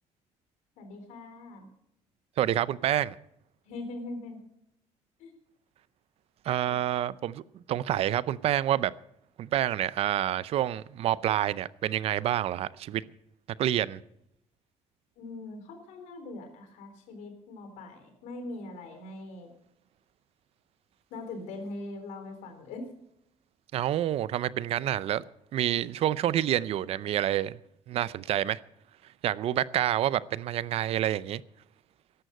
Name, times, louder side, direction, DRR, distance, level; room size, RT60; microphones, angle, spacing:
voice 1, 0.8-1.7 3.7-4.4 5.2-5.3 6.7-6.8 15.2-19.5 21.1-22.9, left 2 dB, 85° left, 3.8 m, -41 dB
voice 2, 2.4-3.1 6.5-7.4 7.7-8.9 9.4-13.0 13.6-14.0 23.7-25.2 25.5-27.6 27.9-28.6 29.2-31.4, right 12 dB, 55° right, 0.5 m, -28 dB
14.5 x 11.5 x 6.5 m
cardioid pair, 135°, 12 cm